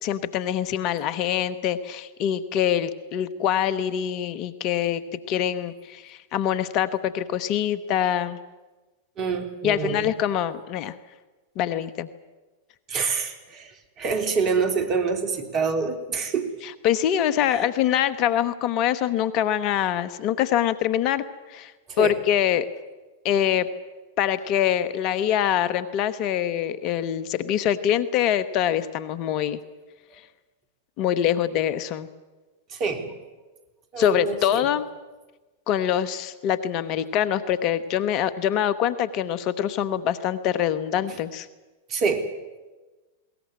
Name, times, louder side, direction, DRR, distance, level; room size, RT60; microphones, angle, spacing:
voice 1, 0.0-8.4 9.6-10.9 11.6-12.1 16.6-21.2 21.5-21.7 22.0-22.6 23.2-23.7 24.2-29.6 31.0-32.1 34.0-34.9 35.7-41.5, left 10 dB, 45° left, 14 dB, 1.2 m, -24 dB
voice 2, 9.2-10.1 10.4-10.5 12.9-13.7 14.0-16.5 21.9-22.2 32.7-33.1 33.9-34.7 41.9-42.3, right 5 dB, 35° right, 7 dB, 3.3 m, -26 dB
21.0 x 18.5 x 9.6 m, 1.2 s
hypercardioid pair, 100°, 0 cm